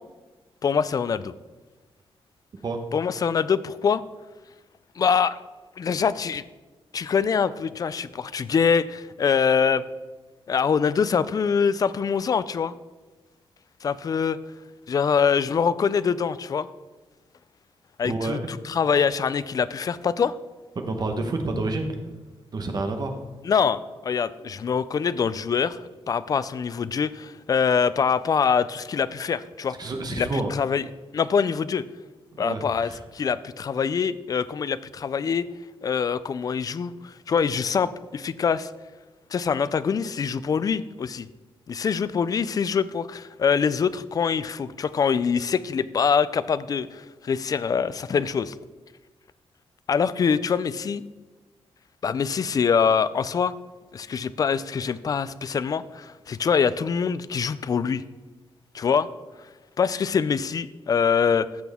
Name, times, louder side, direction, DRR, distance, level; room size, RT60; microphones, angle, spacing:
voice 1, 0.6-1.3 2.9-4.0 5.0-5.4 5.8-6.4 6.9-9.8 10.5-12.7 13.8-14.4 14.9-16.7 18.0-20.4 23.4-25.8 26.1-29.7 30.1-30.8 31.1-31.8 32.4-35.4 35.8-38.7 39.3-41.3 41.7-48.6 49.9-51.0 52.0-53.5 53.9-58.0 58.7-59.1 59.8-61.5, left 6 dB, 35° left, 16 dB, 0.3 m, -24 dB
voice 2, 18.0-18.5 20.8-22.0 22.5-23.2 29.8-30.5 32.3-33.0, right 2 dB, 40° right, 5 dB, 1.1 m, -29 dB
14.5 x 6.1 x 3.5 m, 1.2 s
wide cardioid pair, 165°, 10 cm